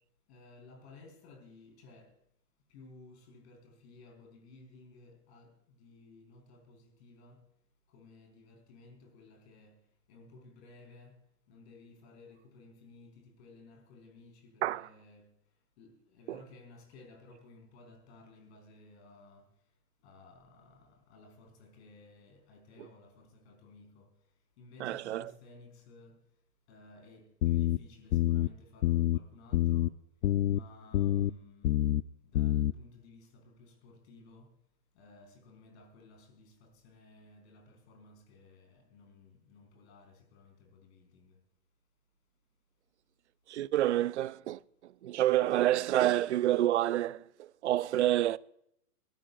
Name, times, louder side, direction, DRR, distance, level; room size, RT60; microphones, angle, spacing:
voice 1, 0.3-2.2 2.7-7.4 7.9-11.2 11.5-15.3 15.8-19.5 20.0-24.2 24.6-26.2 26.7-29.9 30.5-34.5 34.9-41.4, left 3 dB, 45° left, 4.6 m, -56 dB
voice 2, 24.8-25.2 43.5-44.6 45.0-47.2 47.6-48.4, right 13 dB, 50° right, 0.5 m, -28 dB
sound 1, 27.4-27.8 28.1-28.5 28.8-29.2 29.5-29.9 30.2-30.6 30.9-31.3 31.6-32.0 32.3-32.7, left 13 dB, 80° left, 0.6 m, -27 dB
23.5 x 13.0 x 2.4 m
hypercardioid pair, 140°, 48 cm